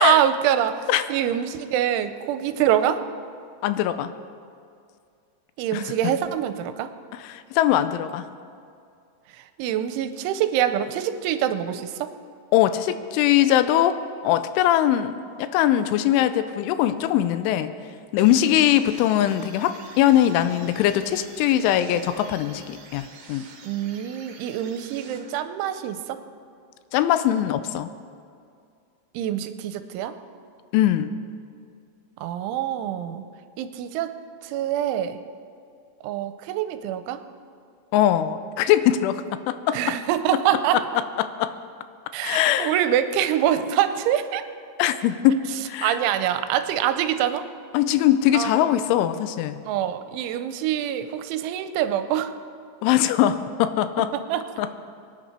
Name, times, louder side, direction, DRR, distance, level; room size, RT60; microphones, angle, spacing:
voice 1, 0.0-3.0 5.6-6.9 9.6-12.1 23.6-26.2 29.1-30.1 32.2-33.2 33.6-34.2 34.4-35.2 36.0-37.2 39.7-40.8 42.1-44.4 45.8-47.5 48.3-48.7 49.7-52.3 54.1-54.4, right 10 dB, 85° right, 10 dB, 3.1 m, -25 dB
voice 2, 3.6-4.1 5.7-5.8 7.1-8.2 12.5-14.0 14.2-17.7 18.1-23.5 26.9-27.9 30.7-31.2 37.9-40.0 40.7-41.5 42.2-42.7 44.8-45.4 45.7-46.0 47.7-49.6 52.8-54.1 54.6-54.7, left 12 dB, 90° left, 11 dB, 3.1 m, -21 dB
sound 1, 18.2-25.7, right 5 dB, 60° right, 2.7 m, -47 dB
23.5 x 10.0 x 4.4 m, 2.4 s
omnidirectional pair, 5.5 m